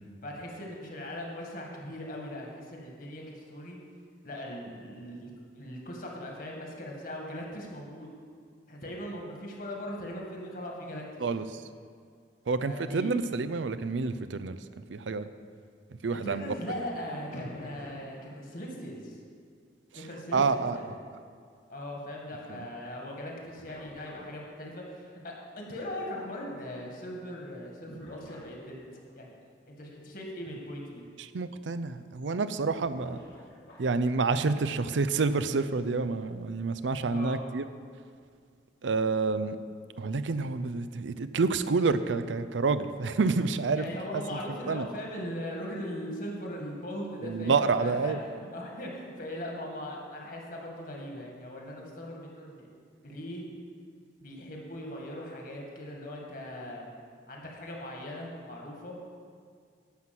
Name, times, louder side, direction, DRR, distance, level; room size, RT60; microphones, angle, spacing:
voice 1, 0.2-3.8 4.2-8.1 8.7-11.2 12.6-13.1 16.2-19.2 19.9-20.9 21.7-28.8 29.2-29.3 29.7-31.0 37.1-37.4 43.7-52.7 53.0-53.4 54.2-56.9 57.3-59.0, left 1 dB, 50° left, -1 dB, 2.1 m, -39 dB
voice 2, 11.2-11.6 12.5-14.6 14.9-15.3 16.0-16.4 20.3-21.0 22.5-22.6 31.2-33.2 33.8-37.6 38.8-39.6 40.0-43.8 44.3-44.4 44.7-44.9 47.2-48.2, right 4 dB, 85° right, 12 dB, 0.5 m, -28 dB
sound 1, 17.3-18.8 22.7-22.8 23.6-24.7 27.9-29.1 30.5-30.6 31.0-31.1 32.8-34.0, equal, 85° left, 2.9 m, -48 dB
11.5 x 6.0 x 7.8 m, 2.1 s
head